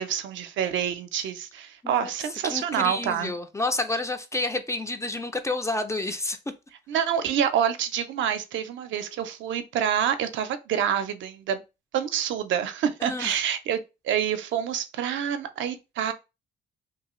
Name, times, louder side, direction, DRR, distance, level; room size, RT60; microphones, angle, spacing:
voice 1, 0.0-3.3 6.9-11.6 11.9-13.8 14.0-16.1, right 9 dB, 75° right, 0.5 m, -27 dB
voice 2, 2.4-6.4 13.0-13.4, left 2 dB, 15° left, 0.3 m, -29 dB
2.7 x 2.3 x 3.0 m
cardioid pair, 90°, 20 cm